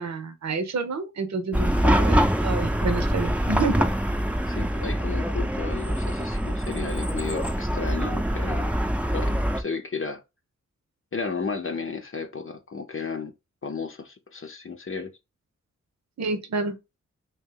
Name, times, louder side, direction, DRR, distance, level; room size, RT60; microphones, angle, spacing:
voice 1, 0.0-3.8 16.2-16.7, right 4 dB, 65° right, 0.8 m, -29 dB
Chatter / Car passing by / Traffic noise roadway noise, 1.5-9.6, equal, 5° right, 0.7 m, -24 dB
voice 2, 4.5-8.7 9.1-10.2 11.1-13.3 13.6-15.1, left 5 dB, 45° left, 0.8 m, -33 dB
3.0 x 2.9 x 3.7 m
cardioid pair, 40°, 30 cm